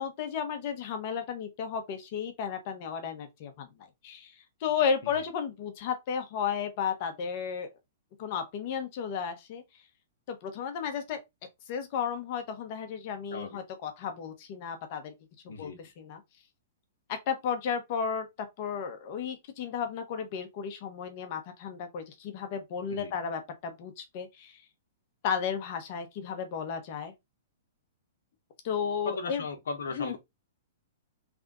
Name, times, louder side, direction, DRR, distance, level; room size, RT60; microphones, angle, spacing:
voice 1, 0.0-3.7 4.0-4.3 4.6-7.7 8.2-9.6 10.3-11.2 11.7-15.1 15.6-15.7 16.0-16.2 17.1-24.6 25.2-27.1 28.6-29.4 29.9-30.2, left 7 dB, 50° left, 1.1 m, -33 dB
voice 2, 15.5-15.8 22.9-23.1 29.0-30.2, left 4 dB, 80° left, 1.1 m, -37 dB
3.6 x 2.5 x 3.7 m
hypercardioid pair, 130°, 0 cm